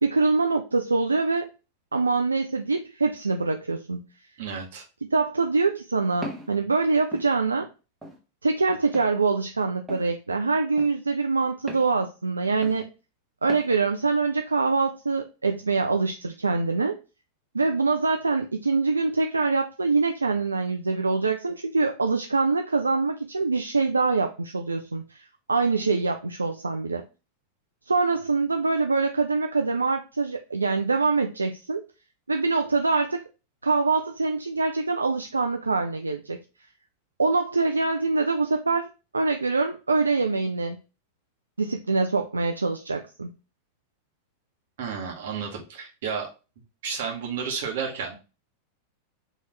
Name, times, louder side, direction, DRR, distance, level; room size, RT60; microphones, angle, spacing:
voice 1, 0.0-1.5 1.9-4.0 5.1-7.7 8.4-12.9 13.4-17.0 17.5-27.0 27.9-31.8 32.3-33.2 33.6-36.4 37.2-38.9 39.1-40.8 41.6-43.3, right 3 dB, 80° right, 5 dB, 0.4 m, -24 dB
voice 2, 4.4-4.8 44.8-46.3 46.8-48.2, right 6 dB, 55° right, 1 dB, 1.4 m, -32 dB
Walk footsteps, 6.2-6.5 7.1-7.3 8.0-8.2 8.9-9.1 9.9-10.1 10.8-10.9 11.7-11.9 12.6-12.8 13.5-13.7, equal, 10° right, 1.2 m, -38 dB
4.4 x 3.1 x 3.2 m, 0.31 s
figure-of-eight pair, 90°, 0 cm